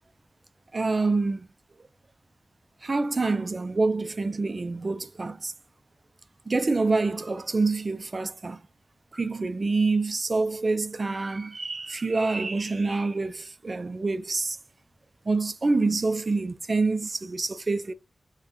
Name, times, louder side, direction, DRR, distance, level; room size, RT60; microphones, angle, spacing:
voice 1, 0.7-1.5 2.8-5.5 6.5-8.6 9.1-14.6 15.3-17.9, right 3 dB, 45° right, 0.3 m, -26 dB
3.7 x 2.1 x 2.6 m
wide cardioid pair, 80°, 0 cm